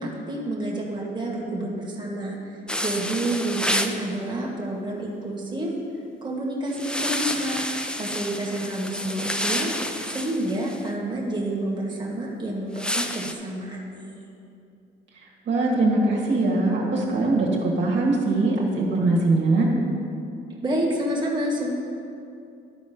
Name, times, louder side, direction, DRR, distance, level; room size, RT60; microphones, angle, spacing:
voice 1, 0.0-5.7 6.2-7.6 8.0-14.3 20.6-21.7, right 1 dB, 25° right, -3 dB, 1.8 m, -29 dB
sound 1, 2.7-4.0 6.7-10.8 12.7-13.3, left 1 dB, 5° left, 0.5 m, -29 dB
voice 2, 15.4-19.7, right 2 dB, 65° right, -3 dB, 1.6 m, -22 dB
12.0 x 4.2 x 5.2 m, 2.6 s
cardioid pair, 90°, 20 cm